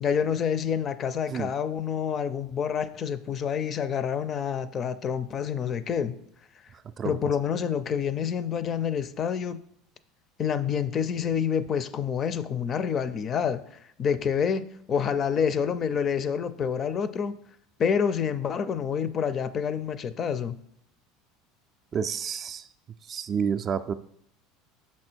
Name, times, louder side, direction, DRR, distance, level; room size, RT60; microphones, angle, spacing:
voice 1, 0.0-6.2 7.0-9.6 10.4-13.6 14.0-17.4 17.8-20.6, left 7 dB, 40° left, 0.4 m, -28 dB
voice 2, 21.9-22.7 23.1-23.9, right 7 dB, 40° right, 0.3 m, -29 dB
6.1 x 4.3 x 4.4 m
supercardioid pair, 100°, 0 cm